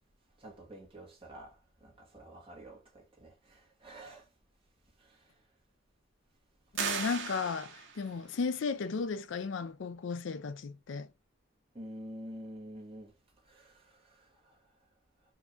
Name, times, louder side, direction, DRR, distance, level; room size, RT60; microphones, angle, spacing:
voice 1, 0.4-4.3 5.0-5.3 11.7-13.1 13.4-14.5, equal, 25° right, 1.7 m, -49 dB
voice 2, 6.7-11.1, left 5 dB, 65° left, 0.4 m, -35 dB
sound 1, 6.7-8.1, right 7 dB, 65° right, 0.9 m, -36 dB
4.7 x 2.8 x 3.5 m
head